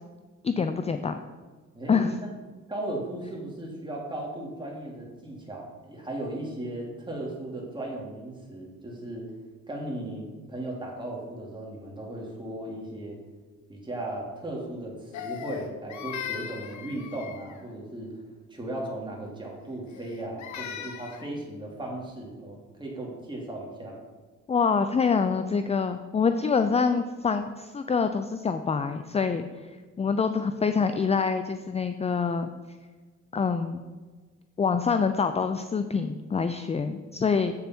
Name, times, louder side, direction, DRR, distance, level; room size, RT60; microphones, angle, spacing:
voice 1, 0.4-1.2 1.9-2.1 24.5-32.5 33.3-33.8 34.6-37.5, left 5 dB, 20° left, 9 dB, 0.4 m, -26 dB
voice 2, 1.7-2.3 2.7-9.3 9.7-13.2 13.7-18.1 18.5-24.0, right 1 dB, 15° right, -2 dB, 2.7 m, -36 dB
Crying sobbing, 15.1-17.7 19.9-21.3, left 8 dB, 70° left, 0.9 m, -38 dB
8.2 x 7.1 x 4.4 m, 1.4 s
cardioid pair, 90°, 30 cm